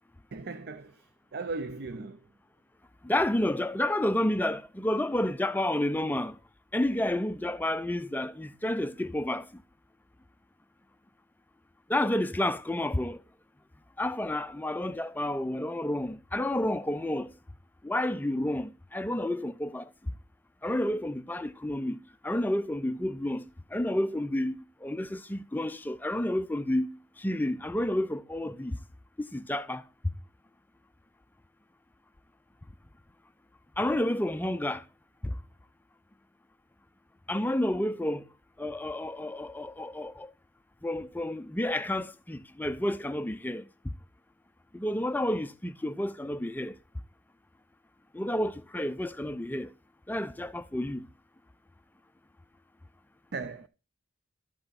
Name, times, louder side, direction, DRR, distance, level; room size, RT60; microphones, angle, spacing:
voice 1, 0.3-2.2 53.3-53.7, right 3 dB, 55° right, 0.6 m, -37 dB
voice 2, 3.0-6.4 6.7-9.5 11.9-13.2 14.0-17.3 17.8-19.9 20.6-23.5 23.7-24.6 24.8-26.9 27.2-28.8 29.2-29.8 33.8-34.8 35.2-35.4 37.3-38.2 38.6-40.3 40.8-43.7 44.7-46.8 48.1-49.7 50.1-51.1, left 1 dB, 10° left, 0.4 m, -30 dB
12.0 x 5.6 x 4.1 m
head